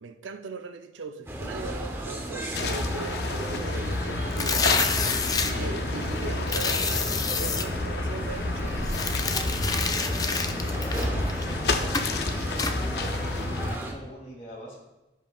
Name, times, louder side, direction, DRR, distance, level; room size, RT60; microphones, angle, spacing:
voice 1, 0.0-8.8, right 4 dB, 85° right, 0.6 m, -39 dB
sound 1, 1.3-13.9, right 1 dB, 15° right, 0.8 m, -35 dB
sound 2, 2.5-13.8, left 2 dB, 60° left, 0.6 m, -30 dB
sound 3, 4.3-5.5 6.5-7.6 8.8-11.5 11.9-12.2 12.6-12.7, left 4 dB, 20° left, 0.4 m, -28 dB
voice 2, 10.5-14.8, right 1 dB, 40° left, 2.7 m, -43 dB
15.5 x 5.5 x 2.4 m
head